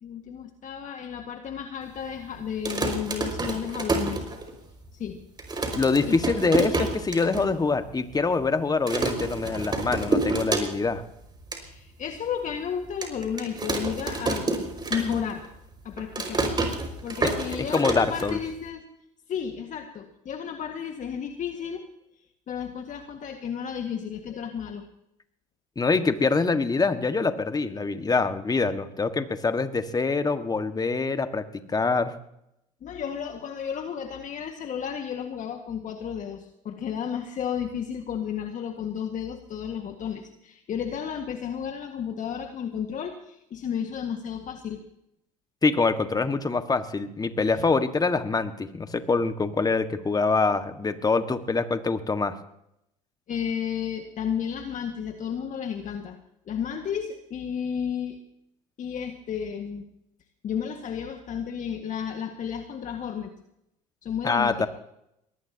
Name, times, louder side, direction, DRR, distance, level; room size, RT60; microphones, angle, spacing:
voice 1, 0.0-4.2 4.9-5.2 6.1-6.2 11.5-14.5 14.9-15.5 15.8-16.5 17.0-18.8 19.3-21.9 22.5-24.8 32.8-44.8 47.5-47.7 53.3-56.2 56.5-58.2 58.8-59.9 60.4-63.3 64.0-64.7, left 8 dB, 45° left, 4 dB, 1.9 m, -32 dB
sound 1, 2.5-4.8 5.1-5.2 5.4-7.4 7.8-7.9 8.1-8.5 8.9-11.0 11.3-11.6 12.1-12.2 13.0-15.5 15.7-18.7, right 3 dB, 25° right, 5.5 m, -29 dB
voice 2, 5.7-11.0 17.2-17.3 17.7-18.4 25.8-32.1 45.6-52.4 64.2-64.7, left 4 dB, 20° left, 9 dB, 1.7 m, -25 dB
23.0 x 19.5 x 2.9 m, 0.80 s
hypercardioid pair, 75°, 18 cm